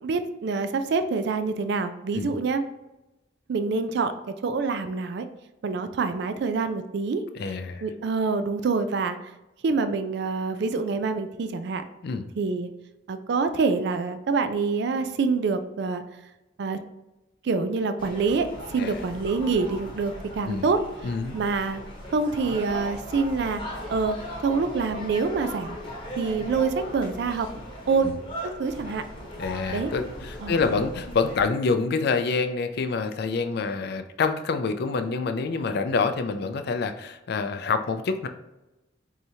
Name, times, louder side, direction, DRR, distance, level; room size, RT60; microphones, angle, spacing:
voice 1, 0.0-2.6 3.5-5.3 5.6-7.2 7.8-9.2 9.6-11.8 12.4-12.7 13.1-16.0 16.6-16.8 17.4-20.8 21.3-21.8 22.1-23.6 23.9-24.2 24.4-25.8 26.2-27.5 27.9-28.1 28.4-29.0 29.7-29.9 30.4-30.6, right 4 dB, 60° right, 9 dB, 0.4 m, -26 dB
voice 2, 7.3-7.8 12.0-12.3 18.8-18.9 20.5-20.6 21.0-21.4 28.0-28.1 29.4-38.3, left 4 dB, 55° left, 8 dB, 0.4 m, -27 dB
sound 1, 18.0-31.5, equal, 25° left, 1.0 m, -38 dB
4.7 x 2.8 x 2.7 m, 1.0 s
head